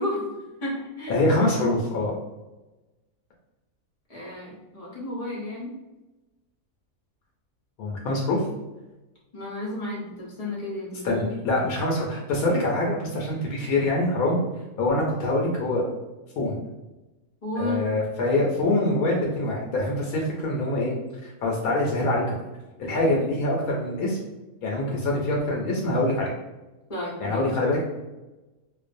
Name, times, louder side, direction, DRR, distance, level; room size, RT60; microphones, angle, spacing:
voice 1, 0.0-1.2 4.1-5.7 9.3-11.6 17.4-17.8 22.9-23.1 26.9-27.5, left 1 dB, 40° left, -6 dB, 0.6 m, -33 dB
voice 2, 1.1-2.1 7.8-8.4 11.0-14.4 14.8-15.8 16.4-16.6 17.6-21.0 21.2-22.3 22.8-24.2 24.6-26.3 27.2-27.8, left 2 dB, 80° left, -2 dB, 1.0 m, -24 dB
2.5 x 2.2 x 2.5 m, 1.1 s
omnidirectional pair, 1.5 m